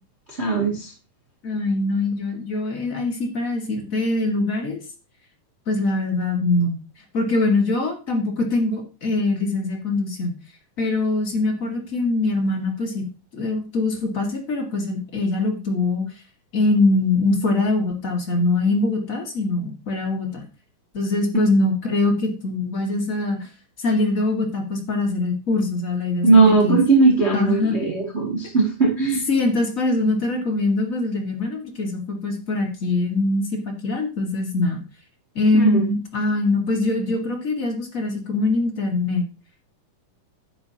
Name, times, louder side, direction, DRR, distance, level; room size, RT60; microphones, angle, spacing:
voice 1, 0.3-0.9 26.2-29.2 35.5-35.9, right 3 dB, 20° right, -2 dB, 2.2 m, -18 dB
voice 2, 1.4-4.8 5.7-6.8 7.1-10.4 10.8-13.1 13.3-16.1 16.5-20.4 20.9-23.5 23.8-26.3 26.6-26.8 27.3-27.8 29.3-33.5 33.8-34.8 35.4-39.3, left 2 dB, 30° left, 1 dB, 1.7 m, -23 dB
11.0 x 9.3 x 2.8 m, 0.31 s
omnidirectional pair, 3.8 m